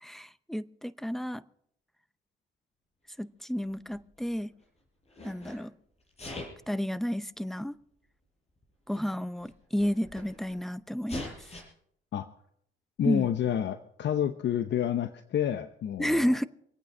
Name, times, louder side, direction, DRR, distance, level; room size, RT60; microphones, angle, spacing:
voice 1, 0.0-1.4 3.2-4.5 5.2-5.7 6.7-7.7 8.9-11.3 13.0-13.3 16.0-16.5, equal, ahead, 0.6 m, -31 dB
Sneeze, 3.6-4.6 5.1-5.6 6.1-6.7 7.6-7.7 8.6-8.7 8.9-9.0 9.4-10.6 11.1-11.6, left 2 dB, 30° left, 5.7 m, -42 dB
voice 2, 13.0-16.4, left 10 dB, 65° left, 0.8 m, -29 dB
25.5 x 9.0 x 5.4 m
cardioid pair, 90°, 20 cm